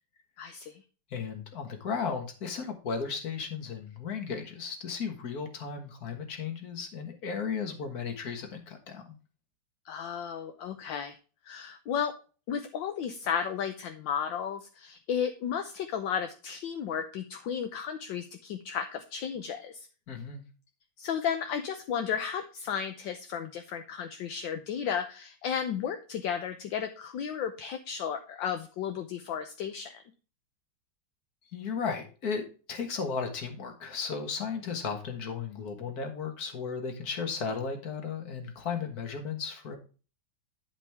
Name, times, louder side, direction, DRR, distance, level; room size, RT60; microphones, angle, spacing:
voice 1, 0.4-0.8 9.9-11.2 11.4-12.1 12.5-19.9 21.0-30.0, left 8 dB, 70° left, 7 dB, 1.3 m, -33 dB
voice 2, 1.1-9.2 20.1-20.4 31.5-39.8, left 5 dB, 45° left, 5 dB, 1.9 m, -35 dB
10.5 x 5.3 x 3.5 m, 0.36 s
omnidirectional pair, 2.4 m